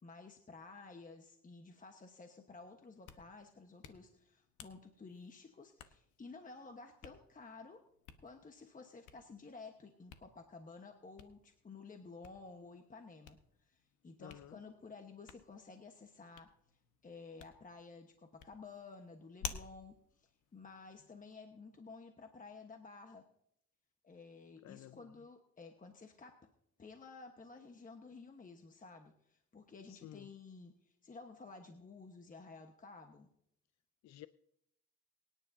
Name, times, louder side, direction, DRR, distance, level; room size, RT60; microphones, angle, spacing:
voice 1, 0.0-7.8 8.2-16.5 17.0-23.3 24.0-26.4 26.8-33.3, left 4 dB, 25° left, 1.2 m, -53 dB
Hands, 2.8-21.3, left 8 dB, 80° left, 1.1 m, -55 dB
voice 2, 14.2-14.6 24.6-25.1 29.9-30.3 34.0-34.3, left 13 dB, 65° left, 0.5 m, -53 dB
23.5 x 10.0 x 2.7 m
cardioid pair, 90°, 30 cm